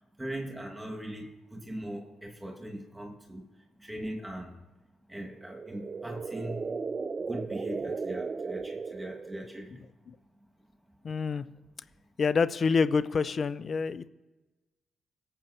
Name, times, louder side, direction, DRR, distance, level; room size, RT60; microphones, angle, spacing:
voice 1, 0.2-3.5 3.8-4.6 5.1-6.7 7.3-9.8, right 1 dB, 15° right, 1 dB, 1.7 m, -40 dB
sound 1, 5.3-9.7, right 4 dB, 40° right, 0.5 m, -36 dB
voice 2, 11.0-11.4 12.2-14.1, left 5 dB, 50° left, 16 dB, 0.4 m, -27 dB
19.5 x 7.5 x 2.7 m, 1.1 s
hypercardioid pair, 45°, 0 cm